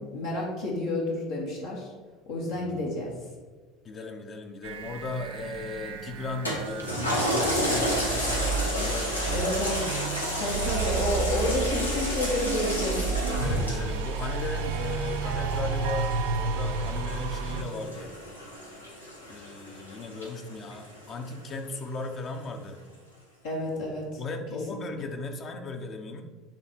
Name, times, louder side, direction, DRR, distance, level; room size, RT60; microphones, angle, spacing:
voice 1, 0.0-1.9 2.3-3.1 9.3-9.9 10.4-13.0 23.4-24.2 24.7-24.9, left 2 dB, 65° left, -4 dB, 1.5 m, -30 dB
voice 2, 2.5-3.1 3.8-9.4 10.8-11.6 13.2-18.1 19.3-22.8 24.2-26.2, left 3 dB, 40° left, 4 dB, 0.9 m, -37 dB
sound 1, 4.6-17.6, right 4 dB, 70° right, 0.5 m, -32 dB
Toilet flush, 6.5-21.3 21.7-21.8, equal, 90° left, 1.0 m, -32 dB
8.8 x 3.4 x 4.5 m, 1.3 s
figure-of-eight pair, 65°, 0 cm